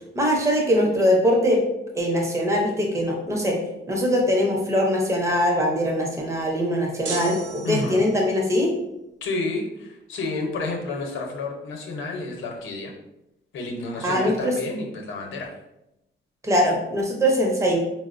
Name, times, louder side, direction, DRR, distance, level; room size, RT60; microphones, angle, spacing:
voice 1, 0.1-1.6 1.9-3.6 3.9-8.7 14.0-14.5 16.4-17.8, equal, 15° right, 0 dB, 0.5 m, -22 dB
sound 1, 7.0-8.4, right 4 dB, 70° right, 0.6 m, -35 dB
voice 2, 7.6-8.0 9.2-12.9 13.5-15.6, left 3 dB, 80° left, 2 dB, 0.7 m, -30 dB
4.2 x 2.0 x 2.4 m, 0.88 s
wide cardioid pair, 165°, 20 cm